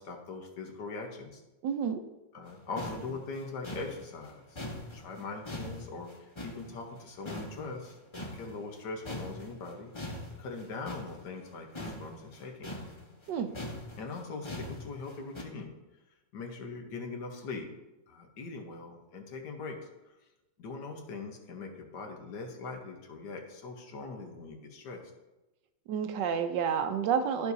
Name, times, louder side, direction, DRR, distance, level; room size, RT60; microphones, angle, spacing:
voice 1, 0.0-1.4 2.3-4.6 4.9-8.0 8.3-9.9 10.4-12.7 14.0-15.7 16.3-17.7 18.1-19.8 20.1-20.2 20.6-25.1, left 3 dB, 65° left, 3 dB, 1.6 m, -41 dB
voice 2, 1.6-2.0 13.3-13.5 25.9-27.5, right 7 dB, 70° right, 8 dB, 1.2 m, -29 dB
sound 1, 2.5-2.6 2.8-7.0 7.2-8.8 9.0-15.4, left 1 dB, 30° left, 0.5 m, -42 dB
13.5 x 4.7 x 2.7 m, 1.0 s
omnidirectional pair, 2.1 m